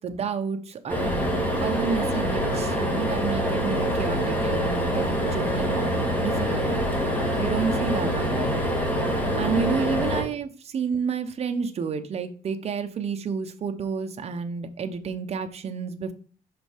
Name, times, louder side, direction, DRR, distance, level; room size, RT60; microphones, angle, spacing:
voice 1, 0.0-6.7 7.4-8.6 9.4-16.1, right 6 dB, 40° right, 7 dB, 0.8 m, -30 dB
sound 1, 0.9-10.2, equal, 10° left, 1.7 m, -25 dB
5.6 x 5.2 x 4.4 m, 0.43 s
cardioid pair, 150°, 16 cm